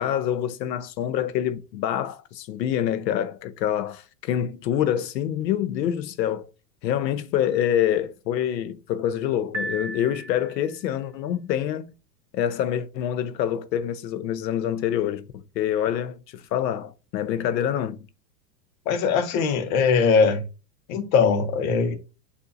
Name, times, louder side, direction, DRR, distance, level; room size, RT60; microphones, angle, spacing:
voice 1, 0.0-6.5 6.8-11.9 12.3-18.0, left 10 dB, 80° left, 0.7 m, -26 dB
Piano, 9.5-10.8, right 1 dB, 30° right, 1.9 m, -34 dB
voice 2, 18.9-20.4 20.9-21.9, left 5 dB, 55° left, 1.0 m, -21 dB
6.7 x 2.7 x 2.6 m
hypercardioid pair, 125°, 50 cm